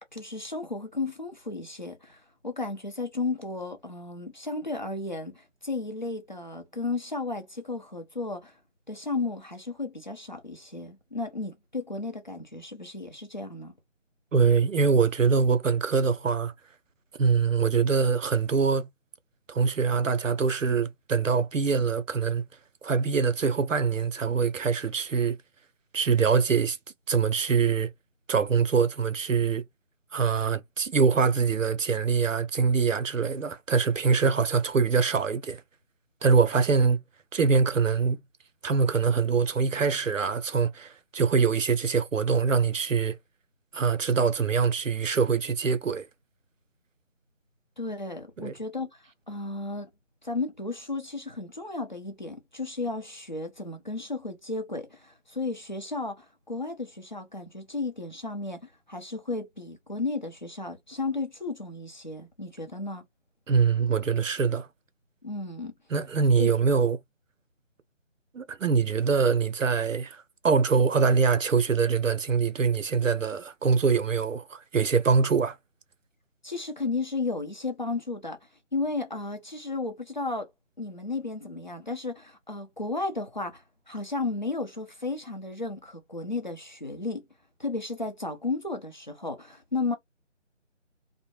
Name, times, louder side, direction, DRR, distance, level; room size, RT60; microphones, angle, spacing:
voice 1, 0.1-8.5 8.9-13.7 47.8-48.9 49.3-49.9 50.2-63.0 65.2-65.7 66.4-66.5 76.4-78.4 78.7-80.5 80.8-87.2 87.6-89.9, left 3 dB, 40° left, 0.6 m, -34 dB
voice 2, 14.3-16.5 17.2-18.9 19.5-22.4 22.8-25.4 25.9-26.8 27.1-27.9 28.3-29.6 30.1-35.6 36.2-37.0 37.3-38.2 38.6-43.2 43.7-46.1 48.4-48.5 63.5-64.7 65.9-67.0 68.3-75.6, right 5 dB, 85° right, 0.6 m, -24 dB
2.6 x 2.0 x 2.9 m
figure-of-eight pair, 160°, 37 cm